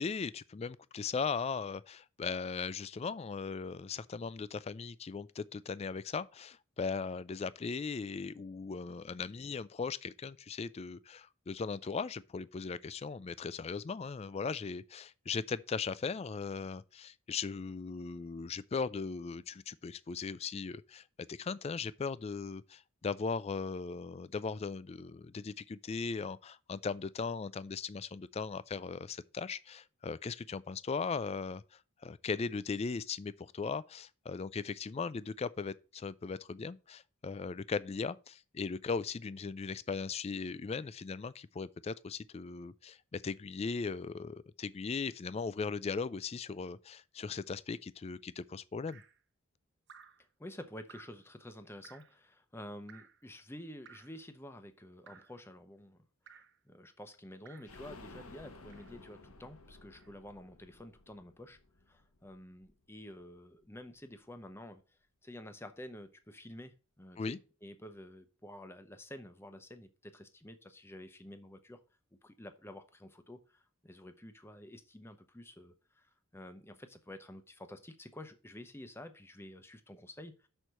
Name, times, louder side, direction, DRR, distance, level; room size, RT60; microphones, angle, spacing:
voice 1, 0.0-49.0 67.2-67.4, left 5 dB, 30° left, 0.3 m, -38 dB
Drip, 48.9-49.2 49.9-50.2 50.9-51.2 51.8-52.2 52.9-53.2 53.8-54.2 55.1-55.4 56.3-56.6 57.4-57.8 58.7-59.0 59.9-60.1, right 7 dB, 55° right, 0.8 m, -57 dB
voice 2, 50.4-56.1 56.3-61.6 61.9-64.8 65.2-71.8 72.2-80.5, left 1 dB, 10° left, 0.7 m, -50 dB
sound 1, 57.6-63.3 63.6-63.7 64.0-64.1, left 3 dB, 85° left, 1.2 m, -55 dB
6.3 x 4.4 x 6.5 m
head